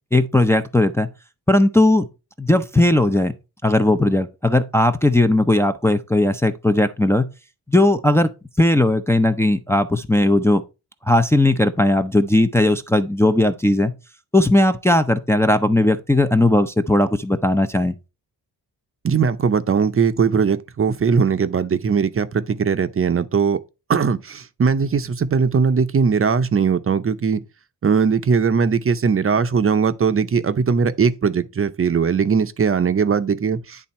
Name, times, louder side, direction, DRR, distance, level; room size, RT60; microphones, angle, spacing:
voice 1, 0.1-1.1 1.5-2.1 2.4-3.3 3.6-7.3 7.7-8.3 8.6-10.6 11.1-13.9 14.3-17.9, left 1 dB, 5° left, 0.5 m, -17 dB
voice 2, 19.0-23.6 23.9-27.4 27.8-33.9, right 6 dB, 35° right, 0.6 m, -19 dB
10.5 x 3.5 x 4.2 m
cardioid pair, 115°, 41 cm